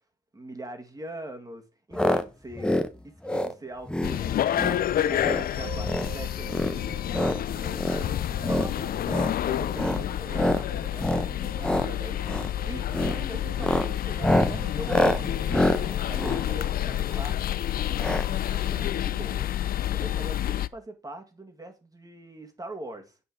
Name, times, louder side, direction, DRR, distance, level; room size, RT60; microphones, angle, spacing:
voice 1, 0.3-2.7 3.0-4.5 5.0-6.9 7.1-9.2 9.4-12.2 12.7-15.6 16.1-19.5 19.9-23.2, right 1 dB, 20° right, 1.9 m, -42 dB
sound 1, 1.9-2.2 2.5-2.9 3.2-3.5 3.9-4.2 4.5-4.8 5.1-5.5 5.8-6.1 6.5-7.4 7.8-8.0 8.4-8.7 9.0-9.4 9.7-10.0 10.3-10.6 11.0-11.3 11.6-11.9 12.2-12.5 12.9-13.2 13.5-17.2 18.0-18.3 18.5-18.6 18.8-18.9, left 1 dB, 5° left, 0.7 m, -26 dB
sound 2, 4.0-20.7, left 11 dB, 50° left, 0.4 m, -29 dB
sound 3, 5.6-17.8, right 7 dB, 65° right, 2.3 m, -47 dB
8.5 x 5.1 x 4.9 m
cardioid pair, 90°, 20 cm